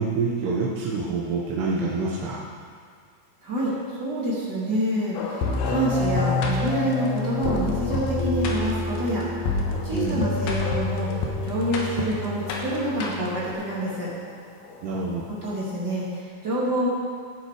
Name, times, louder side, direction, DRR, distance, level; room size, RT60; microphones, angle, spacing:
voice 1, 0.0-2.4 9.9-10.3 14.8-15.3, right 4 dB, 70° right, -4 dB, 2.9 m, -26 dB
voice 2, 3.4-3.7 4.0-9.3 9.8-11.1 11.4-14.1 15.4-16.9, right 1 dB, 30° right, -8 dB, 2.3 m, -27 dB
sound 1, 5.1-16.2, left 3 dB, 85° left, 3.6 m, -39 dB
sound 2, 5.4-13.5, left 3 dB, 70° left, 3.1 m, -27 dB
18.5 x 7.5 x 5.0 m, 2.1 s
omnidirectional pair, 5.5 m